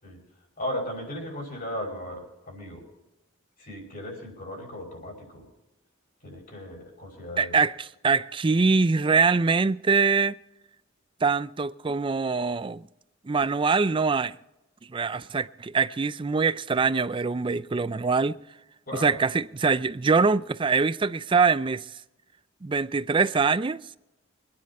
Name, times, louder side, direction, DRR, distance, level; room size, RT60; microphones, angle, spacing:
voice 1, 0.6-2.9 3.6-5.5 6.2-7.6 18.9-19.2, equal, 45° left, 5.8 m, -36 dB
voice 2, 7.4-7.7 8.0-10.3 11.2-12.8 13.2-14.4 14.9-18.3 18.9-21.9 22.6-23.8, right 4 dB, 25° right, 0.4 m, -23 dB
24.5 x 9.9 x 4.3 m
head